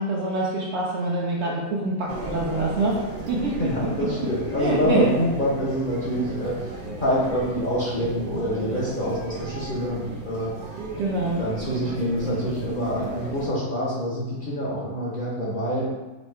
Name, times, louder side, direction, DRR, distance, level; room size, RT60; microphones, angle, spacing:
voice 1, 0.0-3.0 3.3-3.7 4.6-5.1 11.0-11.4, right 2 dB, 60° right, -4 dB, 0.7 m, -25 dB
sound 1, 2.1-13.5, right 2 dB, 85° right, 0.3 m, -35 dB
voice 2, 3.4-6.6 7.0-10.5 11.4-15.9, equal, 45° left, -6 dB, 0.8 m, -26 dB
3.1 x 2.7 x 4.3 m, 1.1 s
omnidirectional pair, 1.6 m